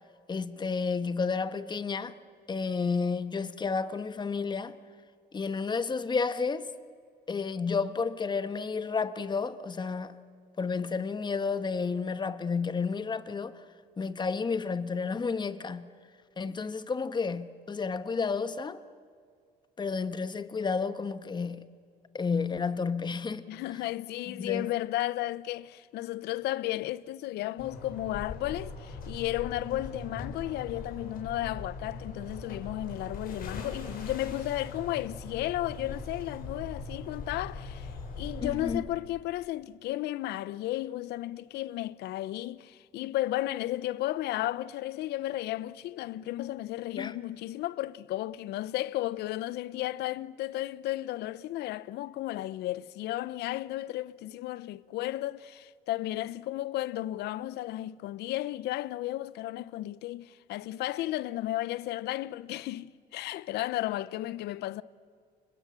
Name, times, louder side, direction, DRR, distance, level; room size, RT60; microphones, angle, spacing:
voice 1, 0.3-2.1 2.5-4.8 5.3-6.7 7.3-10.2 10.6-13.6 14.0-15.9 16.4-18.8 19.8-21.7 22.1-23.4 24.3-24.7 38.4-38.8 47.0-47.1, left 5 dB, 25° left, 1.4 m, -31 dB
voice 2, 23.5-64.8, left 15 dB, 80° left, 0.8 m, -34 dB
sound 1, 27.6-38.8, left 3 dB, 60° left, 6.3 m, -41 dB
29.5 x 26.0 x 7.6 m
cardioid pair, 110°, 17 cm